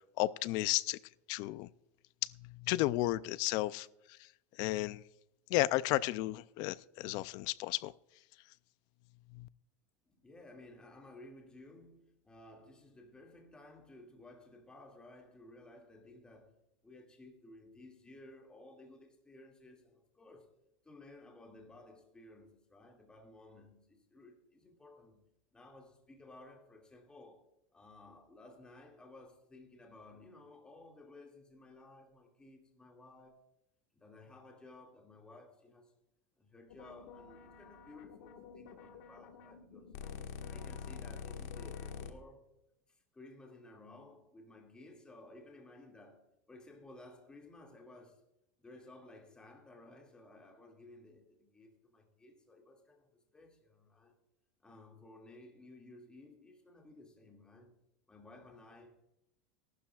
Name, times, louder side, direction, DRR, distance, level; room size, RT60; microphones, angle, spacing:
voice 1, 0.2-1.0 1.3-1.7 2.2-2.3 2.6-3.9 4.6-5.0 5.5-7.9 9.3-9.5, left 17 dB, 50° left, 0.4 m, -33 dB
voice 2, 10.1-16.5 16.8-20.5 20.8-25.3 25.5-27.5 27.7-33.5 34.0-35.9 36.4-40.0 40.5-42.5 42.9-48.2 48.6-54.2 54.6-57.8 58.1-59.2, left 2 dB, 10° left, 2.2 m, -56 dB
sound 1, 36.7-42.1, left 6 dB, 75° left, 1.5 m, -47 dB
19.0 x 12.0 x 2.4 m
supercardioid pair, 145°, 8 cm